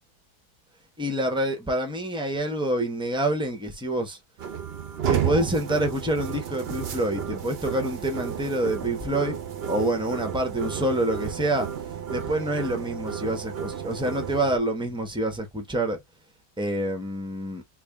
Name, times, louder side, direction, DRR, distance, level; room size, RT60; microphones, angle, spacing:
voice 1, 1.0-4.2 5.1-9.4 9.7-11.7 12.1-16.0 16.6-17.6, right 1 dB, 5° right, 0.4 m, -27 dB
sound 1, 4.4-14.6, right 8 dB, 55° right, 0.7 m, -32 dB
3.4 x 2.6 x 3.4 m
omnidirectional pair, 1.8 m